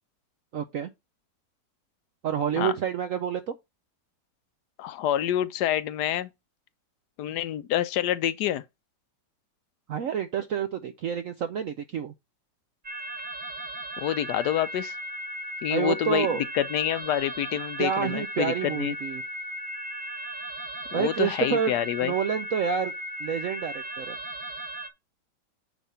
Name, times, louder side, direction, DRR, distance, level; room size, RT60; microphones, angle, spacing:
voice 1, 0.5-0.9 2.2-3.5 9.9-12.1 15.7-16.4 17.8-19.2 20.9-21.7 22.0-22.9 23.2-24.2, right 8 dB, 65° right, 0.9 m, -28 dB
voice 2, 4.8-6.3 7.2-8.6 14.0-15.0 15.6-16.3 16.5-19.0 20.9-22.1, left 11 dB, 70° left, 1.1 m, -27 dB
sound 1, 12.8-24.9, right 1 dB, 30° right, 1.2 m, -37 dB
9.3 x 3.5 x 5.6 m
omnidirectional pair, 1.9 m